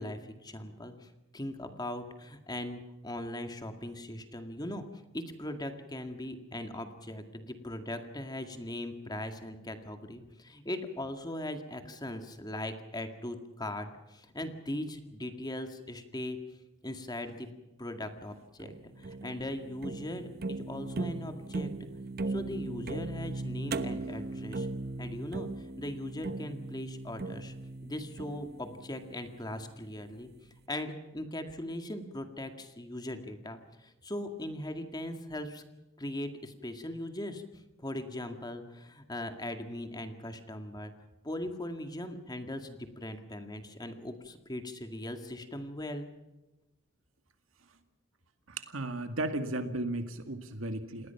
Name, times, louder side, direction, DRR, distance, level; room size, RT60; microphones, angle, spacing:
voice 1, 0.0-4.9 5.1-16.4 16.8-17.5 17.8-21.7 22.3-24.7 25.0-27.5 27.8-30.3 30.7-35.6 36.0-37.4 37.8-40.9 41.2-46.1, left 1 dB, 20° left, 6 dB, 2.0 m, -39 dB
sound 1, 18.6-29.8, right 2 dB, 50° right, 1.1 m, -38 dB
voice 2, 48.5-51.1, right 2 dB, 85° right, 7 dB, 2.1 m, -35 dB
28.5 x 19.5 x 5.8 m, 1.0 s
head